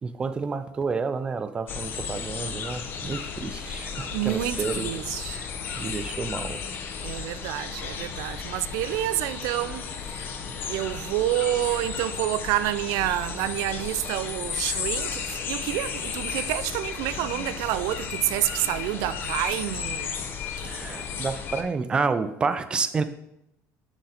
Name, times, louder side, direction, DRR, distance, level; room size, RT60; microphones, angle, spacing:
voice 1, 0.0-4.9 5.2-5.5 5.8-6.6 20.6-23.0, right 4 dB, 15° right, 0.4 m, -30 dB
sound 1, 1.7-21.6, left 6 dB, 40° left, 0.7 m, -34 dB
voice 2, 4.1-5.4 7.0-10.3 10.6-20.2, right 14 dB, 80° right, 0.4 m, -28 dB
10.5 x 3.9 x 4.3 m
cardioid pair, 180°, 6 cm